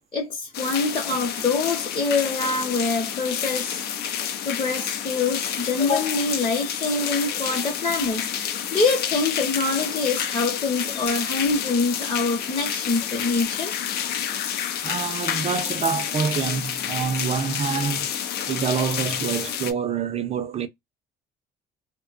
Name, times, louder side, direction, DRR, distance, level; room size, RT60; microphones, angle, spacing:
voice 1, 0.1-3.8 4.4-13.7, left 3 dB, 30° left, 0.8 m, -25 dB
sound 1, 0.5-19.7, left 9 dB, 70° left, 0.5 m, -29 dB
voice 2, 14.8-18.1 18.5-20.7, right 6 dB, 40° right, 0.5 m, -26 dB
2.6 x 2.2 x 2.4 m
cardioid pair, 110°, 17 cm